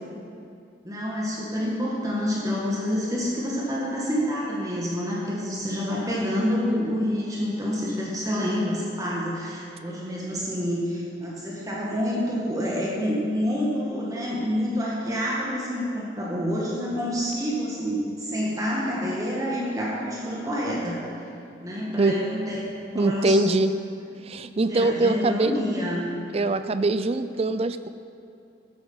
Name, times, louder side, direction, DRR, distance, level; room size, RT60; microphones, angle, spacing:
voice 1, 0.8-21.0 21.6-22.6 22.9-23.4 24.6-26.1, equal, 20° right, -5 dB, 1.8 m, -28 dB
voice 2, 22.9-23.7 24.3-25.5 26.3-27.9, right 2 dB, 35° right, 12 dB, 0.4 m, -23 dB
13.0 x 8.6 x 5.6 m, 2.5 s
head